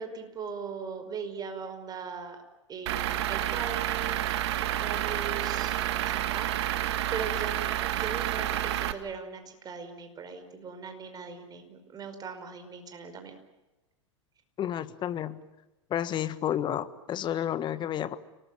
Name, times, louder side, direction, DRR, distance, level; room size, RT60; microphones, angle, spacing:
voice 1, 0.0-2.4 2.7-4.2 4.8-5.7 6.0-6.5 7.1-7.5 7.9-13.4, right 5 dB, 25° right, 7 dB, 5.2 m, -39 dB
Truck / Idling, 2.9-8.9, right 13 dB, 60° right, 1.9 m, -29 dB
voice 2, 14.6-15.4 15.9-18.2, left 10 dB, 30° left, 14 dB, 1.6 m, -31 dB
30.0 x 20.0 x 9.3 m, 1.1 s
hypercardioid pair, 100°, 16 cm